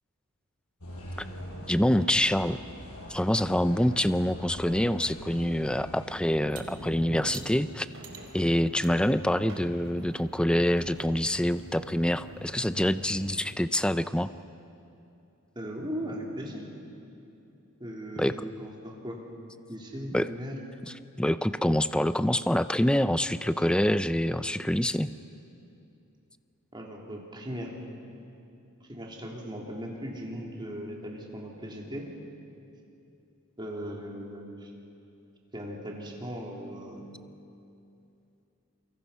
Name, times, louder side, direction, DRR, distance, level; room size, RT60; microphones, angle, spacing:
sound 1, 0.8-6.2, equal, 70° left, 5.8 m, -42 dB
voice 1, 1.7-2.6 3.1-7.9 8.3-14.3 18.2-18.5 20.1-20.3 21.2-25.1, left 1 dB, 5° left, 13 dB, 0.4 m, -26 dB
sound 2, 6.3-13.4, equal, 60° right, 4.3 m, -45 dB
sound 3, 6.5-6.7 7.3-7.5 8.0-8.3 8.8-8.9 9.4-9.5 10.1-10.2 10.6-11.1 12.7-12.8 13.3-13.6, right 9 dB, 80° right, 2.2 m, -47 dB
voice 2, 15.5-16.7 17.8-19.2 19.7-20.6 26.7-27.7 28.9-32.1 33.6-34.7 35.5-37.0, equal, 20° right, -1 dB, 3.2 m, -38 dB
27.5 x 24.0 x 5.7 m, 2.7 s
head